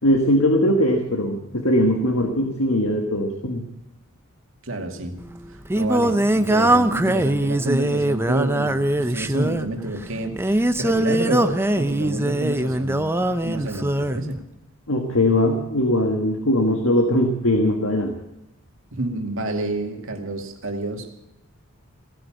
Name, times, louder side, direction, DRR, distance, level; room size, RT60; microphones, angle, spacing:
voice 1, 0.0-3.6 14.9-18.1, left 1 dB, 70° left, 4 dB, 1.8 m, -20 dB
voice 2, 4.6-5.1 5.7-13.1 13.4-14.4 18.9-21.1, right 2 dB, 65° right, 4 dB, 2.3 m, -29 dB
Singing, 5.2-14.2, right 1 dB, 10° right, 0.6 m, -22 dB
16.5 x 9.6 x 8.8 m, 0.88 s
head